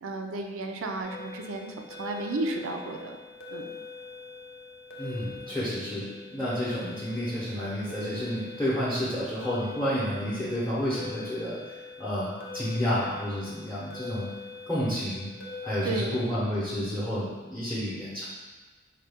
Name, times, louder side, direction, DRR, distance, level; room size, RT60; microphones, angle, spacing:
voice 1, 0.0-3.2 3.5-3.7 15.8-16.2, right 2 dB, 85° right, 4 dB, 0.4 m, -33 dB
sound 1, 1.0-16.2, left 4 dB, 80° left, 0.6 m, -43 dB
voice 2, 5.0-14.3 14.7-15.3 15.6-18.3, equal, 5° left, -10 dB, 0.7 m, -30 dB
4.2 x 2.2 x 3.4 m, 1.3 s
head